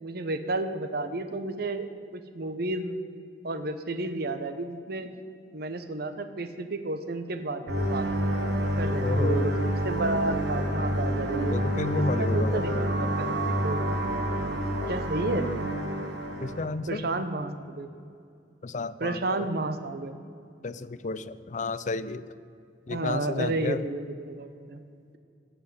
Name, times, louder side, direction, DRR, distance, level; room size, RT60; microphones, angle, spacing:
voice 1, 0.0-3.0 3.4-5.1 5.5-8.1 8.8-9.5 9.8-11.5 12.2-14.0 14.9-15.5 16.9-17.9 19.0-20.1 22.9-24.8, right 2 dB, 60° right, 9 dB, 0.9 m, -31 dB
sound 1, 7.7-16.7, equal, 75° right, 1.5 m, -28 dB
voice 2, 9.0-9.5 11.5-12.6 14.8-15.0 16.4-17.0 18.6-19.5 20.6-22.3 22.9-23.8, left 3 dB, 45° left, 15 dB, 0.5 m, -32 dB
15.5 x 5.4 x 9.5 m, 2.4 s
head